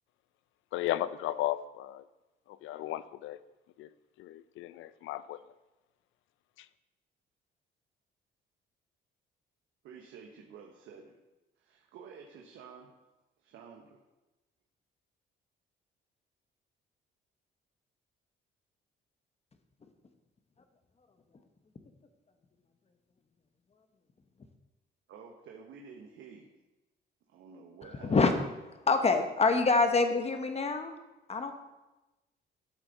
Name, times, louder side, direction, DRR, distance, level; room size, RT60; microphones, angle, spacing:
voice 1, 0.7-2.1 2.5-3.4 3.8-3.9 4.2-5.4 6.6-6.7, left 14 dB, 85° left, 15 dB, 0.5 m, -35 dB
voice 2, 9.8-11.2 11.6-12.9 13.4-14.0 25.1-26.5 27.3-28.2, right 6 dB, 80° right, 0 dB, 1.1 m, -50 dB
voice 3, 27.8-28.3 28.6-30.9 31.3-31.5, left 4 dB, 30° left, 7 dB, 1.2 m, -26 dB
12.5 x 6.8 x 4.1 m, 1.1 s
cardioid pair, 90°, 20 cm